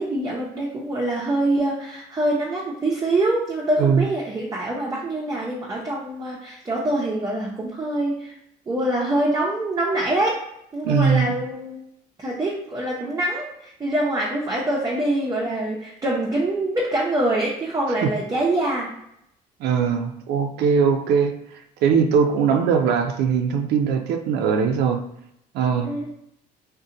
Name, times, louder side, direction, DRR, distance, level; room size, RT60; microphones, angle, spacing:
voice 1, 0.0-8.3 8.7-10.4 10.7-11.8 12.2-18.9 25.8-26.1, right 1 dB, 20° right, -4 dB, 0.6 m, -24 dB
voice 2, 10.8-11.3 18.0-18.1 19.6-21.3 21.8-25.0 25.5-25.9, right 6 dB, 80° right, 5 dB, 0.4 m, -20 dB
2.7 x 2.1 x 3.7 m, 0.76 s
cardioid pair, 110°, 17 cm